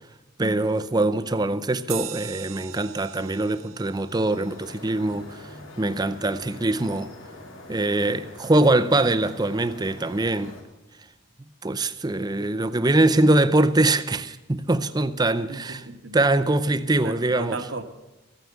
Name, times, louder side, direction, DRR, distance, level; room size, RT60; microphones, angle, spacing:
voice 1, 0.4-5.4 5.8-7.1 7.7-10.5 11.6-15.8 16.1-17.5, right 2 dB, 20° right, 0.6 m, -23 dB
sound 1, 1.9-6.8, right 11 dB, 85° right, 0.8 m, -41 dB
sound 2, 4.3-10.6, left 2 dB, 75° left, 2.5 m, -44 dB
voice 2, 15.5-16.2 17.0-17.8, right 3 dB, 65° right, 1.2 m, -35 dB
14.5 x 9.3 x 8.1 m
head